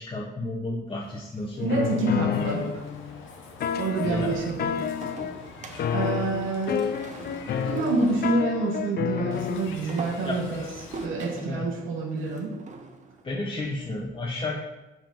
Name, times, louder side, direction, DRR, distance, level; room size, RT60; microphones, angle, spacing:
voice 1, 0.0-2.0 4.0-4.4 10.2-10.4 11.4-11.7 13.2-14.6, left 2 dB, 25° left, -4 dB, 1.0 m, -32 dB
sound 1, 1.1-3.0 5.0-8.8 9.7-13.2, right 3 dB, 35° right, 0.7 m, -43 dB
sound 2, 1.6-3.2 3.6-5.4 5.8-9.7, left 8 dB, 50° left, 0.4 m, -30 dB
voice 2, 1.6-2.8 3.7-4.8 5.9-6.9 7.6-10.7 11.0-12.6, right 3 dB, 85° right, -1 dB, 1.1 m, -27 dB
Meow, 2.3-8.3 9.3-11.1, left 4 dB, 75° left, 0.9 m, -45 dB
5.4 x 5.1 x 3.8 m, 1.0 s
cardioid pair, 90°, 20 cm